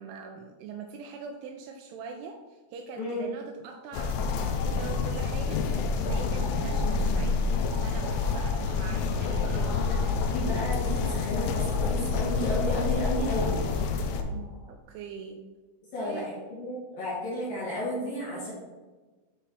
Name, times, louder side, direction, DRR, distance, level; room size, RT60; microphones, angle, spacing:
voice 1, 0.0-7.4 7.8-10.2 14.2-15.4 16.0-16.3, right 5 dB, 85° right, 4 dB, 2.8 m, -42 dB
sound 1, 3.9-14.2, left 4 dB, 85° left, 3.0 m, -28 dB
sound 2, 6.1-14.7, equal, 65° right, 2.3 m, -45 dB
voice 2, 10.2-13.6 15.9-18.5, left 1 dB, 60° left, -7 dB, 2.5 m, -32 dB
9.1 x 4.0 x 4.1 m, 1.3 s
omnidirectional pair, 5.9 m